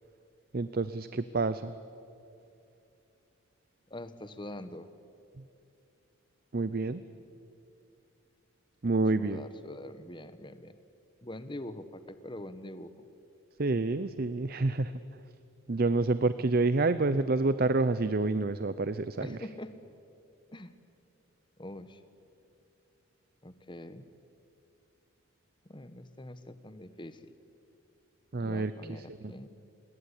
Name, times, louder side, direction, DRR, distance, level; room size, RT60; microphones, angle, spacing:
voice 1, 0.5-1.7 6.5-7.0 8.8-9.4 13.6-14.9 15.7-19.4 28.3-28.7, right 3 dB, 45° right, 14 dB, 0.6 m, -28 dB
voice 2, 3.9-4.9 9.2-10.7 11.2-13.1 19.2-19.8 20.5-20.7 21.6-22.0 23.4-24.1 25.7-27.4 28.4-29.5, left 1 dB, 20° left, 11 dB, 1.2 m, -44 dB
28.0 x 20.5 x 9.8 m, 2.7 s
head